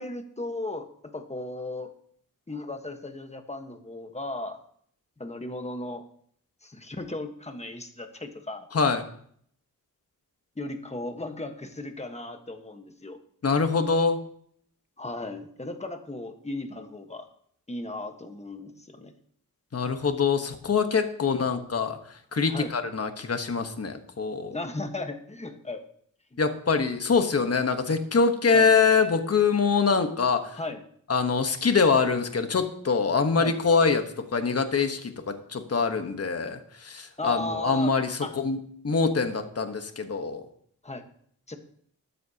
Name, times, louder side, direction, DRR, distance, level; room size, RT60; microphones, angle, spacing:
voice 1, 0.0-1.9 2.5-4.6 5.2-6.0 6.6-8.7 10.6-13.2 15.0-17.3 17.7-19.1 22.4-22.7 24.5-25.8 26.3-26.4 28.5-28.7 30.5-30.8 33.4-33.6 37.2-37.9 38.2-38.3 40.8-41.0 41.5-41.6, left 2 dB, 20° left, 6 dB, 1.3 m, -36 dB
voice 2, 8.7-9.0 13.4-14.2 19.7-22.0 22.3-24.6 26.4-30.6 31.1-38.6 38.8-40.4, left 5 dB, 45° left, 7 dB, 1.2 m, -24 dB
13.0 x 12.5 x 2.9 m, 0.64 s
wide cardioid pair, 110°, 35 cm